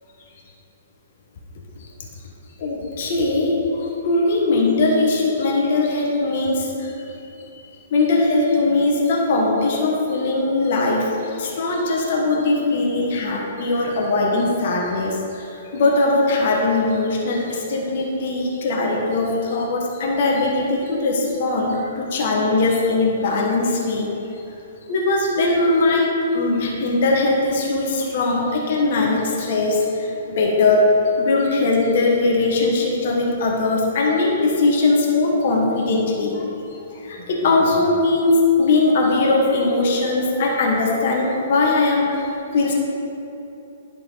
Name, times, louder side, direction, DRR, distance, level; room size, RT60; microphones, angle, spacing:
voice 1, 2.6-7.1 7.9-24.1 24.9-30.9 31.2-36.4 37.0-42.7, left 2 dB, 55° left, -2 dB, 1.5 m, -20 dB
11.0 x 4.6 x 4.2 m, 3.0 s
hypercardioid pair, 125°, 0 cm